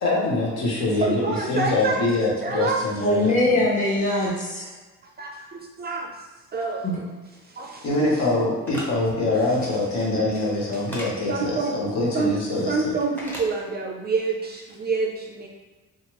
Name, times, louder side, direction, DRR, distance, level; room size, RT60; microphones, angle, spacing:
voice 1, 0.0-3.6 7.8-12.7, left 2 dB, 65° left, -4 dB, 0.9 m, -24 dB
voice 2, 1.0-2.0 2.4-2.8 4.1-4.3 5.2-6.1 6.5-6.8 7.4-7.9 9.6-9.8 11.3-11.7 12.1-12.3 12.7-15.5, right 4 dB, 35° right, 0 dB, 0.4 m, -27 dB
voice 3, 3.0-4.7 6.8-7.0, left 1 dB, 25° left, -6 dB, 1.1 m, -22 dB
sound 1, 8.6-8.9 10.9-11.1 13.2-13.5, equal, 5° left, 0.7 m, -34 dB
2.8 x 2.4 x 2.9 m, 1.3 s
cardioid pair, 90°, 30 cm